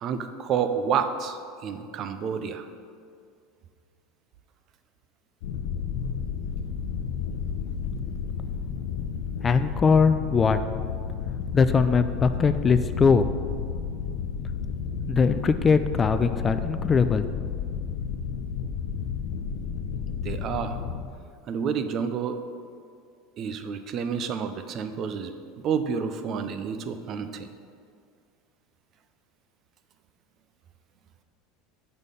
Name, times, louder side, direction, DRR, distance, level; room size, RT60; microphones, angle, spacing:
voice 1, 0.0-2.7 20.2-20.8 21.5-22.4 23.4-27.5, right 7 dB, 45° right, 9 dB, 0.5 m, -29 dB
sound 1, 5.4-21.1, left 6 dB, 80° left, 0.6 m, -31 dB
voice 2, 9.4-10.6 11.5-13.3 15.1-17.3, left 5 dB, 25° left, 11 dB, 0.3 m, -21 dB
6.4 x 5.5 x 5.3 m, 2.3 s
supercardioid pair, 110°, 0 cm